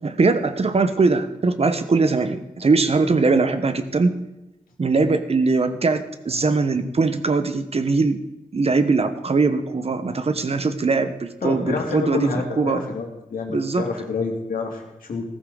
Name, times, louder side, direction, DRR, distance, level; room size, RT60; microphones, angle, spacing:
voice 1, 0.0-4.1 4.8-8.2 8.5-12.9 13.5-13.9, right 3 dB, 45° right, 10 dB, 1.1 m, -21 dB
voice 2, 11.4-15.2, left 4 dB, 85° left, 1 dB, 2.6 m, -28 dB
15.0 x 14.0 x 3.9 m, 0.96 s
cardioid pair, 75°, 14 cm